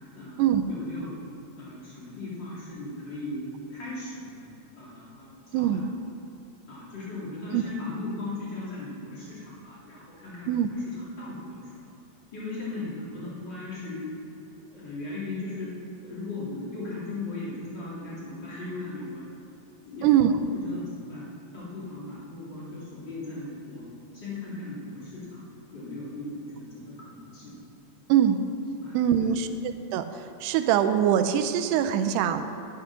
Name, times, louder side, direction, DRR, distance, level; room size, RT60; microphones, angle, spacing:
voice 1, 0.1-1.2 1.6-4.5 4.7-5.8 6.7-11.9 12.3-14.0 14.6-19.3 19.9-20.2 20.5-21.3 21.5-23.9 24.1-25.5 25.7-27.6 28.8-29.6, left 2 dB, 30° left, -7 dB, 3.4 m, -38 dB
voice 2, 5.5-5.8 7.5-7.6 10.5-10.7 20.0-20.3 28.1-28.4 28.9-29.5 29.9-30.0 30.4-32.5, right 10 dB, 85° right, 9 dB, 2.7 m, -22 dB
11.0 x 10.0 x 6.4 m, 2.6 s
omnidirectional pair, 4.8 m